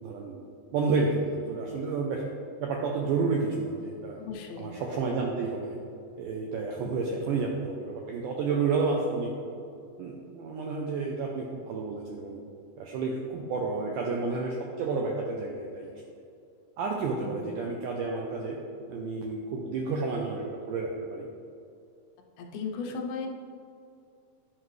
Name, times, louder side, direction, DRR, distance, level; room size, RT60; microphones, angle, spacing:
voice 1, 0.0-0.4 0.7-2.3 2.6-4.2 4.6-5.8 6.2-9.3 10.0-12.4 12.8-16.1 16.8-18.6 18.9-21.3, right 4 dB, 90° right, 0 dB, 1.8 m, -30 dB
voice 2, 4.2-4.7 17.2-17.4 22.4-23.3, left 5 dB, 80° left, 2 dB, 2.5 m, -36 dB
9.8 x 6.0 x 3.1 m, 2.5 s
omnidirectional pair, 4.4 m